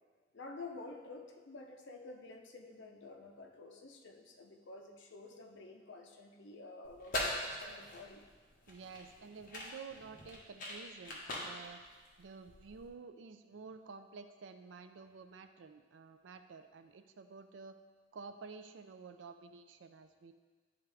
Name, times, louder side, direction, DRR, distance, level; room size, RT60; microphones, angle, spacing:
voice 1, 0.3-8.2, left 3 dB, 75° left, 3 dB, 0.7 m, -50 dB
sound 1, 6.8-12.9, left 1 dB, 50° left, 1.2 m, -42 dB
voice 2, 8.7-11.8 12.2-17.8 18.1-20.3, right 5 dB, 75° right, 9 dB, 0.4 m, -51 dB
10.5 x 3.6 x 3.4 m, 1.4 s
head